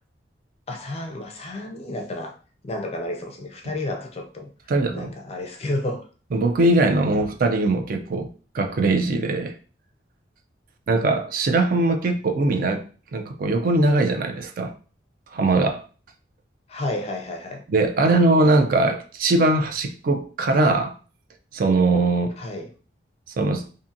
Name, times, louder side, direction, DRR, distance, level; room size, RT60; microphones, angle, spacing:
voice 1, 0.7-2.4 2.6-4.5 4.9-6.1 16.7-17.6 18.0-18.2 22.4-22.7, left 1 dB, 35° left, 0.4 m, -31 dB
voice 2, 4.7-5.1 6.3-8.3 8.5-9.5 10.9-12.8 13.1-14.7 15.3-15.8 17.7-20.9 21.5-22.4 23.4-23.7, right 2 dB, 50° right, 0.3 m, -21 dB
2.7 x 2.5 x 2.5 m
head